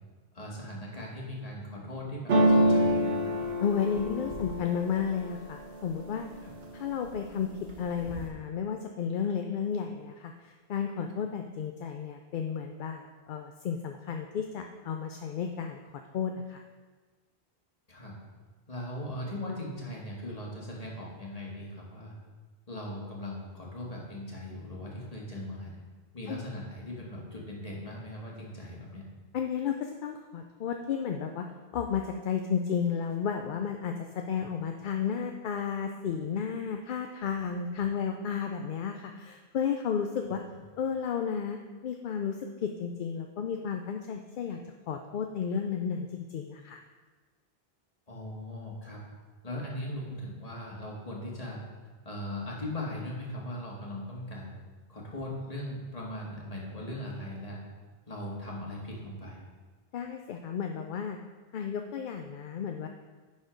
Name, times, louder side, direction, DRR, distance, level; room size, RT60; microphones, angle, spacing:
voice 1, 0.3-3.3 6.4-6.5 17.9-18.1 18.7-22.1 22.7-25.7 26.1-29.0 34.4-34.5 48.1-49.0 49.4-51.6 52.1-54.5 54.9-57.6 58.1-59.4, left 1 dB, 35° left, -3 dB, 1.8 m, -39 dB
sound 1, 2.3-6.2 6.6-7.2 7.5-8.3, equal, 80° right, 1.5 m, -27 dB
voice 2, 3.6-6.3 6.7-7.5 7.8-15.8 16.1-16.6 26.3-26.5 29.3-31.5 31.7-40.4 40.8-44.6 44.9-46.8 59.9-61.2 61.5-62.9, left 7 dB, 60° left, 4 dB, 0.6 m, -33 dB
10.5 x 4.3 x 5.1 m, 1.4 s
omnidirectional pair, 1.1 m